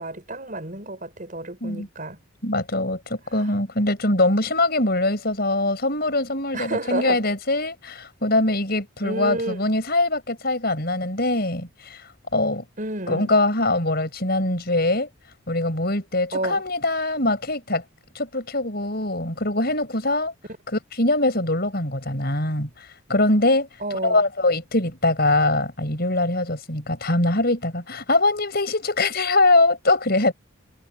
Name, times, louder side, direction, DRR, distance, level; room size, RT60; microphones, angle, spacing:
voice 1, 0.0-2.2 3.3-3.5 6.5-7.2 9.0-9.7 12.8-13.3 16.3-16.6 23.8-24.2, right 1 dB, 40° right, 5.8 m, -30 dB
voice 2, 2.4-12.0 12.3-12.6 13.1-15.1 15.5-17.8 18.2-20.3 21.0-23.7 24.0-30.3, left 2 dB, 45° left, 5.6 m, -22 dB
head